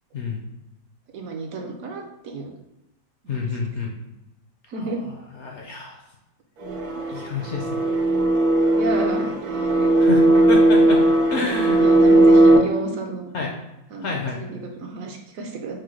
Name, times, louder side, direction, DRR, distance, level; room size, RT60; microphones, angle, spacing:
voice 1, 0.1-0.4 3.3-3.9 4.8-6.0 7.1-7.7 10.0-10.2 10.5-11.0 11.3-11.9 13.3-13.5 14.0-14.4, left 4 dB, 60° left, 0 dB, 0.8 m, -29 dB
voice 2, 1.1-2.6 3.2-3.4 4.7-5.0 8.7-9.9 11.7-13.3 13.9-14.1 14.4-15.8, right 3 dB, 70° right, 3 dB, 1.0 m, -32 dB
sound 1, 6.6-12.6, right 1 dB, 85° right, 1.2 m, -17 dB
4.7 x 2.1 x 4.5 m, 0.93 s
omnidirectional pair, 1.7 m